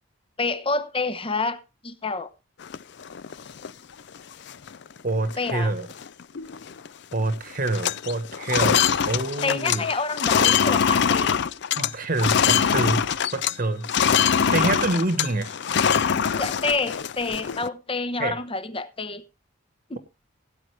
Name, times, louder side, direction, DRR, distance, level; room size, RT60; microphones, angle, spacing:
voice 1, 0.4-2.3 5.4-5.7 9.4-11.4 16.3-19.2 19.9-20.0, left 3 dB, 25° left, 0.9 m, -28 dB
sound 1, 2.6-3.7 4.2-4.3 4.5-4.9 5.3-5.5 5.8-6.9 7.1-7.4 7.6-13.6 13.8-17.7, left 7 dB, 55° left, 0.5 m, -23 dB
voice 2, 5.0-5.9 7.1-9.9 11.8-13.0 13.3-13.9 14.5-15.6 18.2-18.4, right 2 dB, 45° right, 1.2 m, -26 dB
17.0 x 8.7 x 3.2 m
head